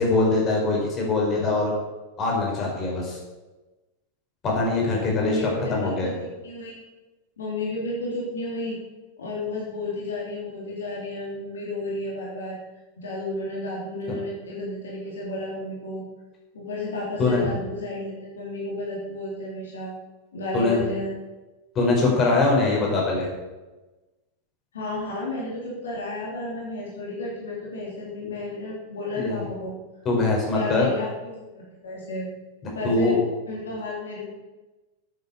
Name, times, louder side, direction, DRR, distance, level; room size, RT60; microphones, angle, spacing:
voice 1, 0.0-1.7 2.2-3.2 4.4-5.4 5.7-6.1 14.1-14.2 17.2-17.4 20.5-20.8 21.8-23.3 29.1-29.4 30.1-30.9 32.6-33.2, left 3 dB, 30° left, -2 dB, 5.2 m, -22 dB
voice 2, 5.1-6.1 6.4-6.8 7.4-8.8 9.2-12.6 13.0-16.0 16.5-19.9 20.3-21.1 24.7-29.7 30.5-32.3 32.7-33.1 33.5-34.3, left 2 dB, 65° left, -5 dB, 3.6 m, -32 dB
9.6 x 9.5 x 6.9 m, 1.1 s
figure-of-eight pair, 90°, 0 cm